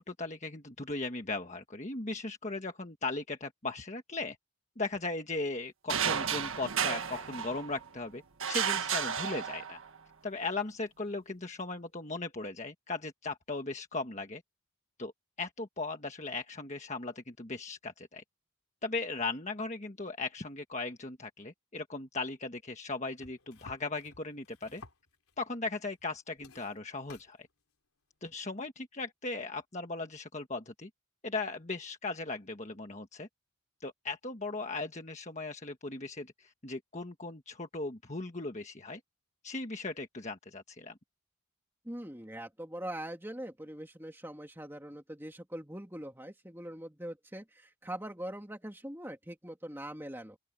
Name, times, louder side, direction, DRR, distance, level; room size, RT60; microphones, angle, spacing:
voice 1, 0.0-4.4 4.8-8.2 8.5-9.8 10.2-14.4 15.0-15.1 15.4-18.2 18.8-24.8 25.4-27.5 28.2-30.9 31.2-33.3 33.8-39.0 39.4-40.9, left 3 dB, 35° left, 1.4 m, -38 dB
sound 1, 5.9-7.9 8.4-10.0, right 7 dB, 70° right, 1.6 m, -32 dB
sound 2, 23.2-25.4 25.9-26.1 26.4-27.3 28.3-28.4, left 3 dB, 85° left, 3.5 m, -54 dB
voice 2, 41.8-50.4, right 1 dB, 10° right, 2.6 m, -42 dB
open air
head